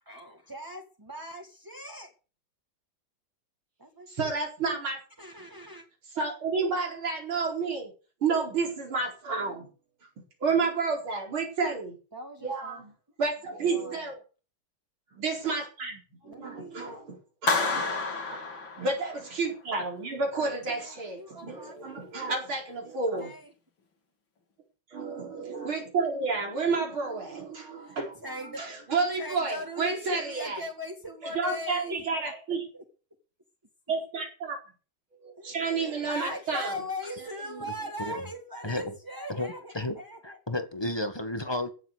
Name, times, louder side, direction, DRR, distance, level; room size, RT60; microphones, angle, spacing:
voice 1, 0.1-2.1 3.8-4.4 5.2-5.9 12.1-12.8 13.6-14.1 16.2-16.9 17.7-18.0 20.7-22.1 23.2-23.5 27.8-28.7 29.2-32.0 32.5-32.8 35.3-40.4, left 1 dB, 10° right, 2 dB, 1.9 m, -40 dB
voice 2, 4.1-5.0 6.1-7.9 8.2-9.7 10.4-11.9 12.4-12.9 13.2-14.2 15.2-17.8 18.2-18.4 18.8-23.3 24.9-28.2 28.6-30.6 31.2-32.7 33.9-34.6 35.2-36.8 37.2-37.7, right 4 dB, 85° right, 1 dB, 5.4 m, -30 dB
Clapping, 17.5-19.3, left 3 dB, 70° left, 3.6 m, -29 dB
voice 3, 38.6-39.0 39.3-41.7, left 1 dB, 15° left, 8 dB, 1.5 m, -33 dB
16.5 x 7.6 x 8.2 m, 0.37 s
omnidirectional pair, 2.2 m